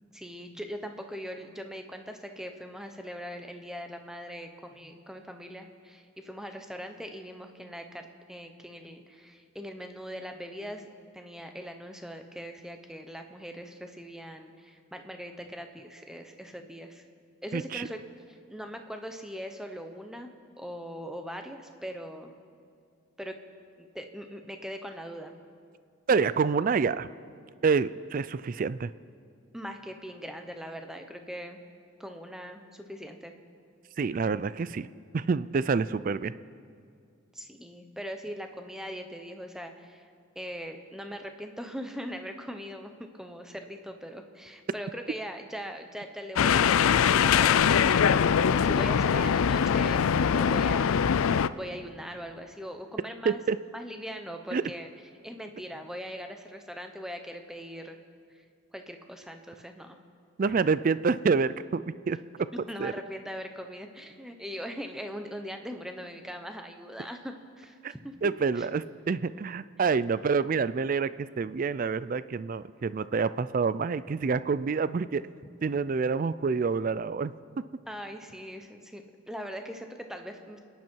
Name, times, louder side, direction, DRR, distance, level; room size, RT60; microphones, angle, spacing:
voice 1, 0.1-10.9 11.1-17.1 17.4-18.0 18.3-20.3 20.6-22.3 23.2-23.4 23.8-25.3 29.5-31.6 32.0-33.3 37.3-40.1 40.3-50.9 51.5-53.4 53.7-54.9 55.2-58.0 58.3-58.4 58.7-60.0 62.7-68.1 68.6-68.7 77.9-80.6, equal, ahead, 5 dB, 0.9 m, -41 dB
voice 2, 17.5-17.9 26.1-27.1 27.6-28.9 34.0-34.9 35.1-36.3 53.3-53.6 54.5-54.6 60.4-62.2 62.8-62.9 67.8-67.9 68.2-75.2 75.6-77.3, right 5 dB, 40° right, 16 dB, 0.3 m, -27 dB
sound 1, 46.4-51.5, left 7 dB, 80° left, 0.4 m, -22 dB
28.0 x 10.5 x 4.6 m, 2.3 s
head